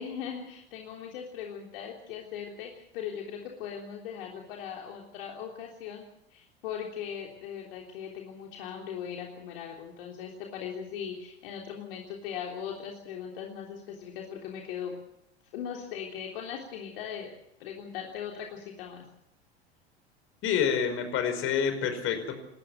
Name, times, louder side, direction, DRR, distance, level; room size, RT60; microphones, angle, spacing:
voice 1, 0.0-15.0 15.5-19.0, left 8 dB, 60° left, 0 dB, 3.5 m, -39 dB
voice 2, 20.4-22.4, left 7 dB, 40° left, 8 dB, 5.2 m, -27 dB
28.5 x 14.0 x 8.0 m, 0.78 s
figure-of-eight pair, 85°, 32 cm